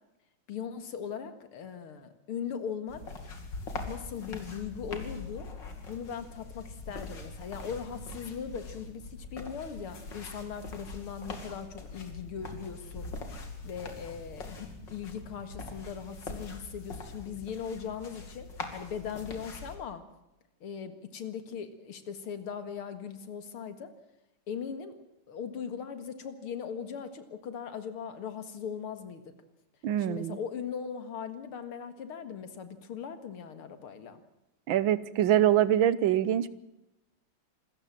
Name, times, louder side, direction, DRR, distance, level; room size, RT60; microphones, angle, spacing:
voice 1, 0.5-3.0 3.9-5.5 5.9-13.1 13.6-20.0 20.6-23.9 24.5-24.9 25.3-29.2 30.0-34.2, left 7 dB, 85° left, 10 dB, 2.7 m, -39 dB
sound 1, 2.9-19.8, left 3 dB, 55° left, 3.1 m, -43 dB
voice 2, 29.8-30.4 34.7-36.5, right 11 dB, 70° right, 17 dB, 1.6 m, -24 dB
26.5 x 14.5 x 7.6 m, 0.92 s
omnidirectional pair, 2.3 m